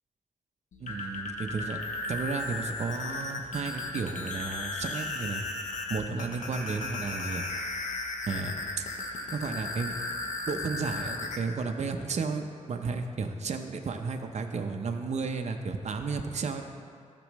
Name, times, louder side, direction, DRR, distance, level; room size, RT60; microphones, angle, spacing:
sound 1, 0.7-11.4, left 2 dB, 75° left, 0.9 m, -35 dB
voice 1, 0.8-1.8 2.1-5.4 5.9-7.4 8.3-8.8 9.3-10.0 10.5-16.6, right 4 dB, 60° right, 5 dB, 0.7 m, -33 dB
13.5 x 6.1 x 3.1 m, 2.4 s
cardioid pair, 70°, 13 cm